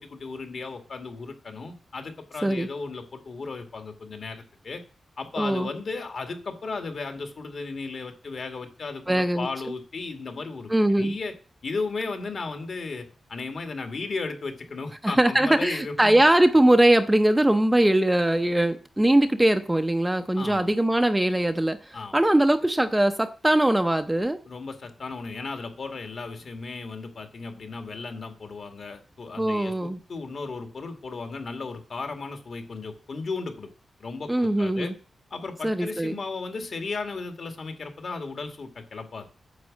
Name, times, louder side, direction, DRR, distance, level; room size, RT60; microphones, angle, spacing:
voice 1, 0.0-4.8 5.2-10.7 11.0-11.3 11.6-16.2 20.4-20.8 21.9-22.2 24.5-33.7 34.0-34.9 35.3-39.2, left 4 dB, 50° left, 2.1 m, -35 dB
voice 2, 5.4-5.7 9.1-9.5 10.7-11.2 15.0-24.4 29.4-30.0 34.3-34.9 35.6-36.2, right 1 dB, 10° right, 0.6 m, -21 dB
9.5 x 7.5 x 7.4 m
wide cardioid pair, 175°, 0 cm